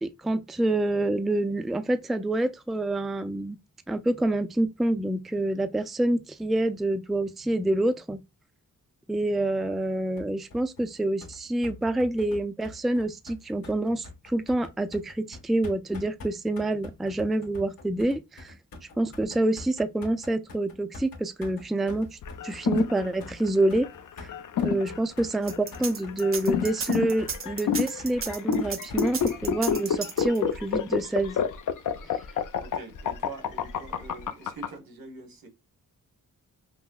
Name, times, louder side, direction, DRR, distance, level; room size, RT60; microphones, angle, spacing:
voice 1, 0.0-3.6 3.9-8.2 9.1-18.5 19.0-22.2 22.4-23.9 24.2-24.3 24.6-31.4, right 1 dB, ahead, 0.3 m, -27 dB
sound 1, 10.2-29.6, left 3 dB, 85° left, 1.7 m, -45 dB
sound 2, 22.2-34.7, left 8 dB, 60° left, 0.6 m, -29 dB
sound 3, 25.4-30.6, right 5 dB, 40° right, 0.6 m, -34 dB
voice 2, 32.6-35.5, right 3 dB, 85° right, 1.3 m, -44 dB
5.6 x 2.1 x 2.3 m
wide cardioid pair, 100°, 34 cm